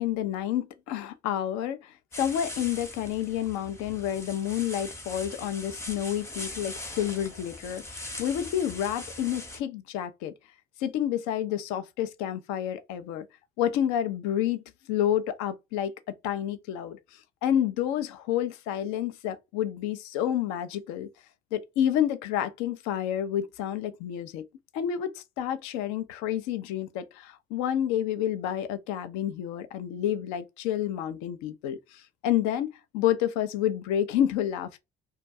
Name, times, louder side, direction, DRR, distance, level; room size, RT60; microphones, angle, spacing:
voice 1, 0.0-10.3 10.8-13.3 13.6-14.6 14.9-15.9 16.2-21.1 21.5-24.5 24.7-34.8, left 10 dB, 70° left, 0.5 m, -29 dB
sound 1, 2.1-9.6, left 1 dB, 10° left, 0.7 m, -41 dB
2.3 x 2.2 x 2.6 m
hypercardioid pair, 50°, 30 cm